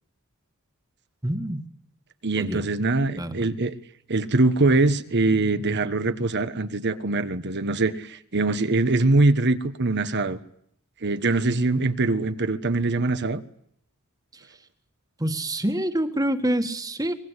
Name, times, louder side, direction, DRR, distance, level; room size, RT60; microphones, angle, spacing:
voice 1, 1.2-1.6 2.4-2.6 2.9-3.5 14.3-14.4 15.2-17.1, right 1 dB, 15° right, 8 dB, 1.8 m, -27 dB
voice 2, 2.2-3.7 4.1-10.4 11.0-13.4, right 2 dB, 55° right, 11 dB, 1.3 m, -23 dB
24.0 x 21.0 x 8.3 m, 0.69 s
head